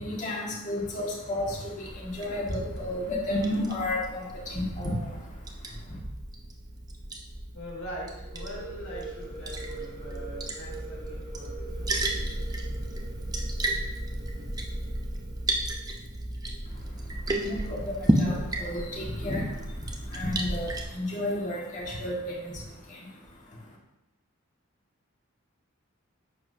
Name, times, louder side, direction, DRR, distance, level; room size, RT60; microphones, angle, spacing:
voice 1, 0.0-6.0 16.7-23.8, left 1 dB, 35° left, -4 dB, 1.9 m, -33 dB
Liquid, 1.9-20.8, right 1 dB, 20° right, 0.7 m, -33 dB
voice 2, 7.5-12.4, equal, 85° left, -3 dB, 3.1 m, -43 dB
sound 1, 8.2-15.8, right 4 dB, 45° right, 1.6 m, -45 dB
10.5 x 7.2 x 2.8 m, 0.96 s
head